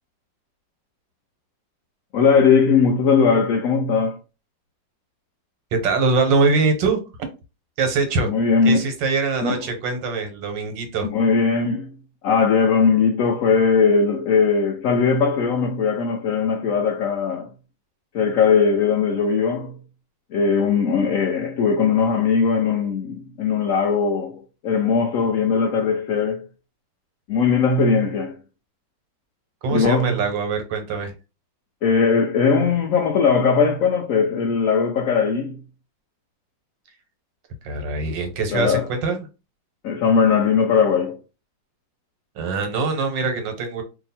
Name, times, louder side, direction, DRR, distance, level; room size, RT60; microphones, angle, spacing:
voice 1, 2.1-4.2 8.2-8.8 9.4-9.6 11.0-11.9 12.2-17.5 18.1-19.7 20.3-26.5 27.3-28.4 29.7-30.2 31.8-35.6 38.5-38.9 39.8-41.2, left 5 dB, 85° left, 0.7 m, -19 dB
voice 2, 5.7-7.0 7.8-8.3 8.6-11.1 29.6-31.1 37.6-39.3 42.3-43.8, right 3 dB, 80° right, 1.6 m, -23 dB
2.8 x 2.7 x 4.1 m
omnidirectional pair, 2.0 m